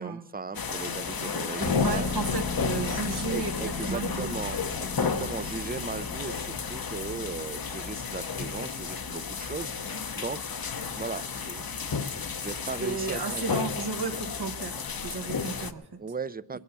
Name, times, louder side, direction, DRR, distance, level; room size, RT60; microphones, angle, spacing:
voice 1, 0.0-2.1 3.3-10.4 11.0-13.6 16.0-16.6, right 4 dB, 25° right, 18 dB, 0.5 m, -37 dB
sound 1, 0.5-15.7, left 5 dB, 60° left, 0.8 m, -33 dB
sound 2, 1.6-13.2 13.5-13.6, left 4 dB, 90° left, 1.3 m, -38 dB
voice 2, 1.6-3.5 3.9-4.3 12.8-16.0 16.5-16.6, right 4 dB, 75° right, 4 dB, 1.1 m, -33 dB
22.0 x 8.5 x 6.8 m, 1.0 s
wide cardioid pair, 45°, 39 cm